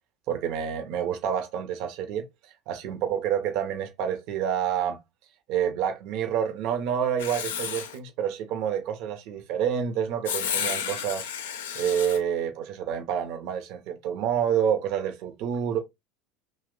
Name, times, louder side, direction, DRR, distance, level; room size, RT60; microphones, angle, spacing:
voice 1, 0.3-2.3 2.7-5.0 5.5-11.3 11.8-15.8, right 8 dB, 60° right, 0.6 m, -28 dB
Writing, 7.2-8.0 10.2-12.2, left 8 dB, 85° left, 0.4 m, -31 dB
2.8 x 2.1 x 3.6 m
hypercardioid pair, 85°, 0 cm